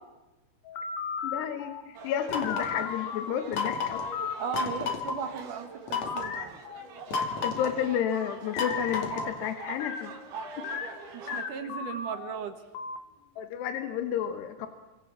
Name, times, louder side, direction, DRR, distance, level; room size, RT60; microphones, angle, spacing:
sound 1, 0.7-3.3 3.9-4.4 4.8-5.4 6.0-7.3 7.7-13.0, left 6 dB, 90° left, 4.3 m, -37 dB
voice 1, 1.2-4.0 7.4-10.1 10.6-10.7 13.4-14.7, left 9 dB, 75° left, 8 dB, 3.2 m, -31 dB
sound 2, 1.9-11.5, right 6 dB, 90° right, 5.5 m, -44 dB
sound 3, 2.3-2.8 3.5-4.1 4.5-5.2 5.9-6.3 7.1-7.8 8.6-9.4, left 4 dB, 45° left, 3.2 m, -31 dB
voice 2, 4.4-6.3 11.1-12.6, right 6 dB, 55° right, 8 dB, 2.7 m, -36 dB
29.0 x 26.0 x 7.3 m, 1.1 s
omnidirectional pair, 5.2 m